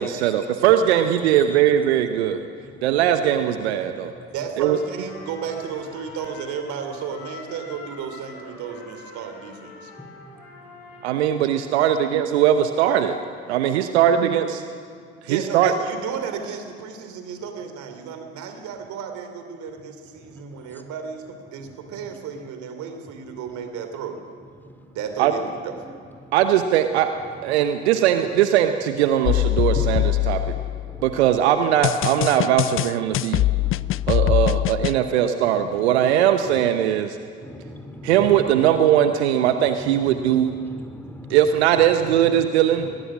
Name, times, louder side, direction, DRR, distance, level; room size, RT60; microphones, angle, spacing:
voice 1, 0.0-2.4 2.8-4.1 4.6-4.8 11.0-13.2 13.5-14.6 15.2-15.7 25.2-25.3 26.3-27.1 27.4-30.5 31.0-33.4 34.1-37.2 38.0-40.5 41.3-42.9, right 10 dB, 75° right, 8 dB, 1.0 m, -20 dB
voice 2, 4.3-9.9 15.3-24.2 24.9-25.7, right 7 dB, 60° right, 6 dB, 3.1 m, -33 dB
Trumpet, 4.6-12.2, left 3 dB, 75° left, 5.8 m, -44 dB
sound 1, 29.3-31.1 31.8-35.0, left 16 dB, 40° left, 0.4 m, -22 dB
voice 3, 33.5-34.1 37.4-38.1 39.9-41.4 42.4-42.5, left 1 dB, 5° left, 6 dB, 2.8 m, -39 dB
22.0 x 19.5 x 6.2 m, 2.2 s
figure-of-eight pair, 55°, 33 cm